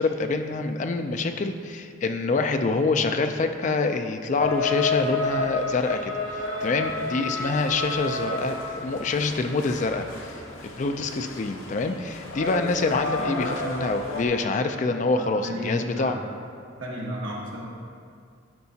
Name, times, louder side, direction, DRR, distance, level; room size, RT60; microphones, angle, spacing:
voice 1, 0.0-6.1 6.6-10.3 10.6-16.2, left 3 dB, 35° left, 7 dB, 0.3 m, -26 dB
sound 1, 4.4-14.3, left 3 dB, 85° left, 0.8 m, -31 dB
voice 2, 15.1-16.2 16.8-17.6, equal, 75° right, -5 dB, 1.4 m, -33 dB
11.0 x 4.7 x 2.8 m, 2.3 s
head